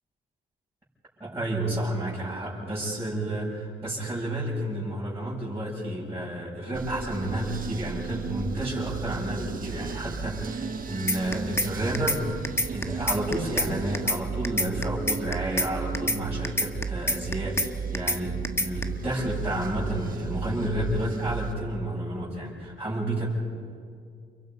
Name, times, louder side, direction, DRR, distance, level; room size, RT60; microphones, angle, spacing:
voice 1, 1.2-23.3, right 1 dB, 15° right, -10 dB, 7.6 m, -31 dB
sound 1, 6.7-21.5, right 6 dB, 45° right, 1.4 m, -35 dB
sound 2, 11.1-11.7 11.9-12.2 12.4-13.7 13.9-14.2 14.4-15.7 15.9-16.2 16.4-17.7 17.9-18.2 18.4-18.8, left 1 dB, 15° left, 1.3 m, -25 dB
29.5 x 23.0 x 5.5 m, 2.2 s
cardioid pair, 90°, 20 cm